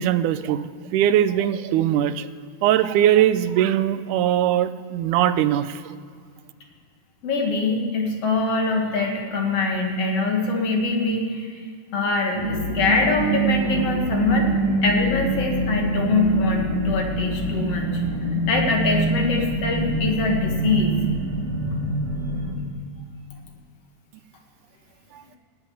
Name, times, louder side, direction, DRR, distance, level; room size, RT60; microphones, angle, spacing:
voice 1, 0.0-2.3 2.6-5.8, right 11 dB, 80° right, 12 dB, 2.0 m, -20 dB
voice 2, 7.2-11.5 11.9-14.5 14.8-17.8 18.5-20.9, left 3 dB, 50° left, 1 dB, 2.6 m, -23 dB
sound 1, 12.3-22.5, right 1 dB, 55° right, 3.5 m, -25 dB
18.0 x 7.9 x 9.8 m, 2.1 s
omnidirectional pair, 3.9 m